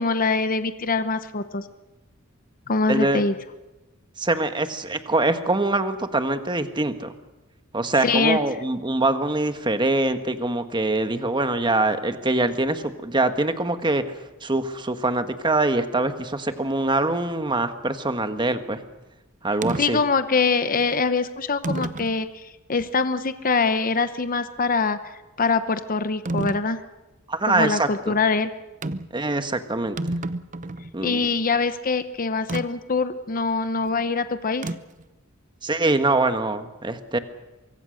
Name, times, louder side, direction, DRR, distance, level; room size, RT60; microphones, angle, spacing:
voice 1, 0.0-1.6 2.7-3.4 8.0-8.4 19.8-25.0 25.4-26.8 27.5-28.5 31.0-34.7, left 4 dB, 40° left, 11 dB, 0.9 m, -23 dB
voice 2, 2.9-3.2 4.2-7.1 7.7-14.1 14.4-18.8 19.4-20.0 27.3-28.1 29.1-30.2 30.9-31.3 35.6-37.2, right 2 dB, 20° right, 8 dB, 1.4 m, -24 dB
sound 1, 19.6-19.9 20.8-20.9 21.6-22.2 22.8-22.9 26.3-26.7 28.8-29.2 29.5-29.6 29.8-30.9 32.5-32.7 34.6-35.0, right 2 dB, 40° right, 0.8 m, -29 dB
24.0 x 24.0 x 6.5 m, 1.1 s
head